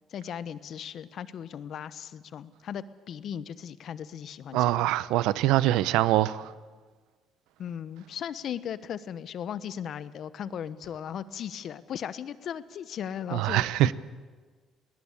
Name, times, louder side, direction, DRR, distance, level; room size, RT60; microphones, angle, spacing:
voice 1, 0.1-4.8 7.6-13.6, left 9 dB, 60° left, 1.0 m, -37 dB
voice 2, 4.5-6.5 13.3-13.9, right 15 dB, 85° right, 0.7 m, -24 dB
20.5 x 19.0 x 8.4 m
supercardioid pair, 80°, 0 cm